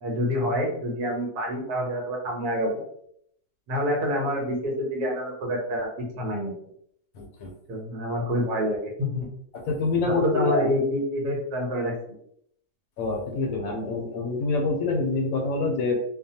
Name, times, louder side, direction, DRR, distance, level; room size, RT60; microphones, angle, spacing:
voice 1, 0.0-2.7 3.7-6.5 7.7-9.3 10.0-11.9, equal, 85° right, 0 dB, 1.4 m, -27 dB
voice 2, 7.1-7.5 9.5-10.6 13.0-16.0, left 3 dB, 70° left, 1 dB, 1.0 m, -26 dB
2.9 x 2.2 x 2.7 m, 0.70 s
omnidirectional pair, 1.6 m